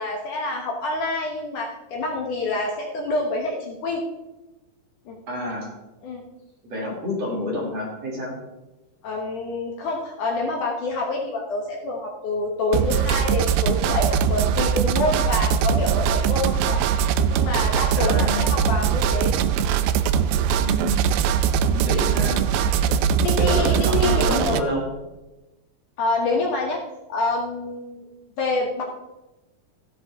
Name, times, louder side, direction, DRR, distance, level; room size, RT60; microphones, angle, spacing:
voice 1, 0.0-4.0 5.1-5.2 6.0-6.2 9.0-16.9 17.3-19.3 19.9-20.0 21.5-21.7 22.8-24.7 26.0-26.8 27.1-28.0 28.4-28.8, left 3 dB, 65° left, 0 dB, 2.3 m, -27 dB
voice 2, 5.3-5.7 6.6-8.3 17.9-18.6 20.6-21.0 21.7-22.4 22.9-23.0 23.4-24.9, left 1 dB, 40° right, -3 dB, 3.7 m, -28 dB
sound 1, 12.7-24.6, right 8 dB, 80° right, 2.4 m, -21 dB
14.5 x 10.0 x 3.6 m, 1.0 s
omnidirectional pair, 4.6 m